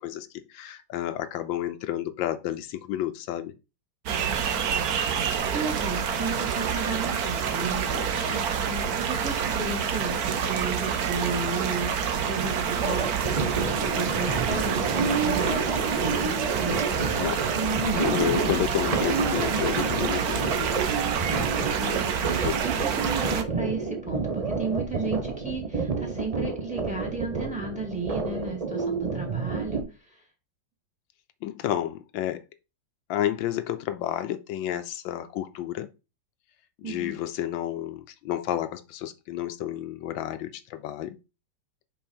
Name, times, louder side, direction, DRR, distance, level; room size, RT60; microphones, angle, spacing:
voice 1, 0.0-3.5 7.8-8.4 17.2-17.5 17.9-20.8 22.4-22.6 28.2-28.8 31.4-32.4 33.1-35.9 36.8-41.1, left 11 dB, 85° left, 1.4 m, -31 dB
sound 1, 4.1-23.4, right 7 dB, 60° right, 1.2 m, -28 dB
voice 2, 5.5-13.4 13.7-16.8 21.8-30.2 36.8-37.1, right 3 dB, 5° right, 2.3 m, -34 dB
sound 2, 12.8-29.8, right 4 dB, 40° right, 0.5 m, -29 dB
5.6 x 5.5 x 4.4 m
omnidirectional pair, 2.1 m